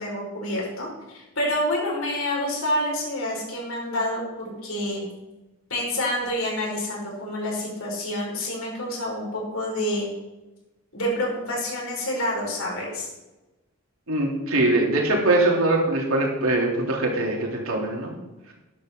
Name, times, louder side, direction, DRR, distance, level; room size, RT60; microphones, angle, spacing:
voice 1, 0.0-5.1 5.7-10.1 10.9-13.1, left 1 dB, 90° left, -2 dB, 4.9 m, -28 dB
voice 2, 14.1-18.1, right 2 dB, 90° right, -1 dB, 3.2 m, -22 dB
13.0 x 10.5 x 3.8 m, 1.0 s
head